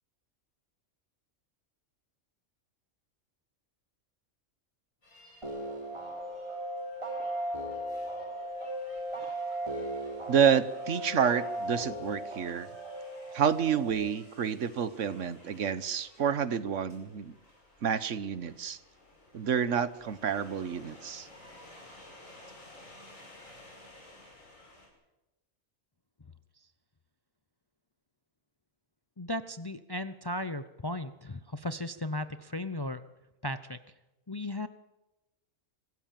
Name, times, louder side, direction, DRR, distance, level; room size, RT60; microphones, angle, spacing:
sound 1, 5.0-24.9, left 1 dB, 80° left, 6.3 m, -56 dB
sound 2, 5.4-13.9, right 1 dB, 20° right, 3.8 m, -37 dB
voice 1, 10.3-12.7 13.3-17.3 17.8-18.8 19.3-21.3, right 7 dB, 70° right, 15 dB, 1.3 m, -29 dB
voice 2, 29.2-33.0 33.4-33.8 34.3-34.7, left 1 dB, 25° left, 12 dB, 0.6 m, -36 dB
25.0 x 15.5 x 7.5 m, 1.0 s
omnidirectional pair, 1.4 m